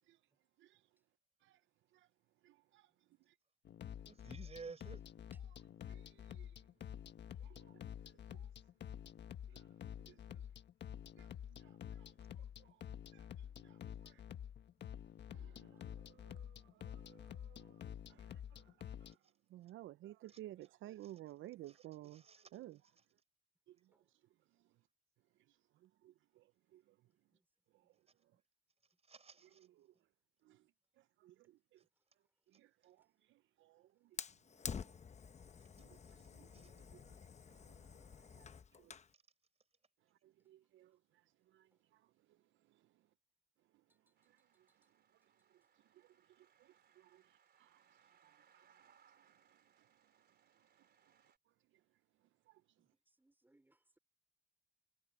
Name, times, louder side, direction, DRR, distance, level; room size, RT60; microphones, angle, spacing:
voice 1, 2.4-2.9 5.5-5.6 5.9-6.5 7.4-7.8 8.3-8.5 9.5-9.7 10.1-10.4 11.2-11.3 11.6-12.1 12.4-12.8 13.1-14.2 15.3-17.8 18.1-18.7 19.0-19.2 19.5-22.2 22.5-22.8 23.7-23.8 26.0-26.4 26.7-26.8 29.6-29.9 30.5-30.6 31.2-31.8 32.5-33.0 33.6-33.9 34.8-35.0 35.8-37.2 37.5-38.5 38.8-38.9 40.2-41.0 41.5-41.7 46.4-47.2 47.6-47.8 48.8-48.9 52.5-52.6, right 15 dB, 75° right, 0.5 m, -57 dB
sound 1, 3.6-19.1, left 9 dB, 60° left, 1.5 m, -50 dB
voice 2, 4.1-5.0 20.3-20.4 21.0-21.1 21.7-22.5 29.1-29.7 36.5-36.7, right 4 dB, 30° right, 5.4 m, -54 dB
voice 3, 7.7-8.1 23.9-24.0 27.3-27.4 30.5-30.6 53.2-54.0, right 2 dB, 10° right, 4.0 m, -75 dB
Fire, 34.2-39.1, left 6 dB, 35° left, 0.9 m, -50 dB
sound 2, 44.2-51.4, right 8 dB, 55° right, 3.8 m, -72 dB
cardioid pair, 90°, 20 cm